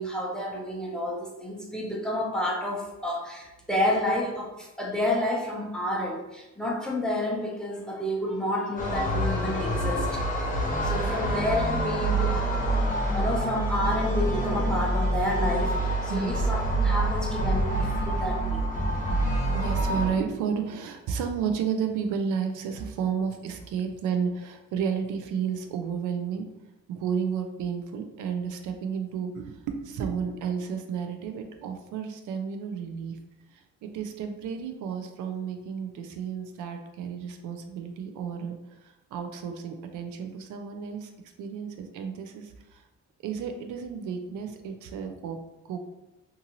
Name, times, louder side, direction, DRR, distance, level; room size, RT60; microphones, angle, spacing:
voice 1, 0.0-10.2 10.5-15.7 16.0-18.8, left 1 dB, ahead, -2 dB, 0.7 m, -30 dB
sound 1, 8.8-20.1, right 1 dB, 25° left, 1.0 m, -26 dB
voice 2, 16.1-16.5 19.5-26.5 26.9-33.2 33.5-41.1 41.4-42.8 43.2-45.9, right 6 dB, 80° right, 5 dB, 0.4 m, -32 dB
2.6 x 2.6 x 2.8 m, 0.99 s
cardioid pair, 90°, 30 cm